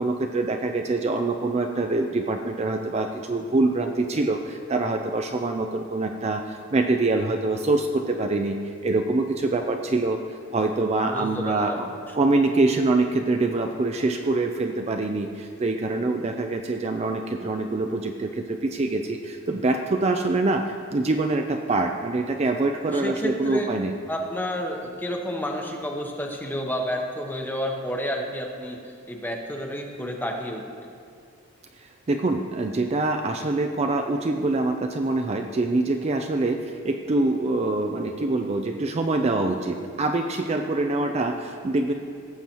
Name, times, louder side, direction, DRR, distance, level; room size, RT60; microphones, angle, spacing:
voice 1, 0.0-8.6 8.8-10.2 10.5-11.9 12.1-23.9 31.8-41.9, right 2 dB, 30° right, 4 dB, 0.4 m, -25 dB
voice 2, 11.1-11.9 22.9-23.7 24.1-28.8 29.1-30.6, equal, 10° left, 2 dB, 0.8 m, -30 dB
17.5 x 7.7 x 2.9 m, 2.2 s
head